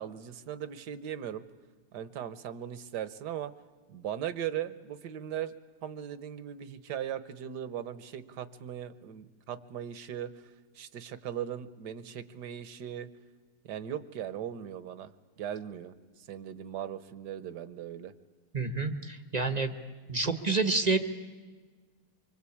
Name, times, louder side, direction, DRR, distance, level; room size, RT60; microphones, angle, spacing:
voice 1, 0.0-1.4 1.9-3.5 3.9-5.5 5.8-10.3 10.7-13.1 13.6-15.1 15.4-16.0 16.3-18.1, right 10 dB, 60° right, 14 dB, 1.4 m, -38 dB
voice 2, 18.5-19.7 20.1-21.0, right 3 dB, 30° right, 8 dB, 0.8 m, -28 dB
25.0 x 25.0 x 8.5 m, 1.4 s
omnidirectional pair, 2.4 m